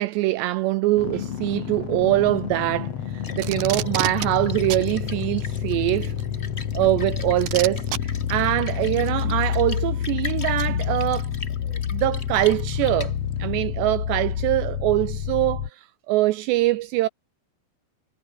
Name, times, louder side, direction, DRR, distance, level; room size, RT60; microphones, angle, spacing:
voice 1, 0.0-6.2 6.7-11.3 11.6-13.1 13.4-17.1, right 17 dB, 90° right, 2.5 m, -23 dB
sound 1, 1.0-15.7, left 9 dB, 75° left, 1.5 m, -28 dB
Splash splatter, 3.0-13.6, left 3 dB, 90° left, 0.5 m, -40 dB
Packing tape duct tape, 3.4-4.3 4.7-4.9 6.2-6.3 7.4-8.0 9.1-9.2, right 13 dB, 75° right, 2.0 m, -28 dB
omnidirectional pair, 5.6 m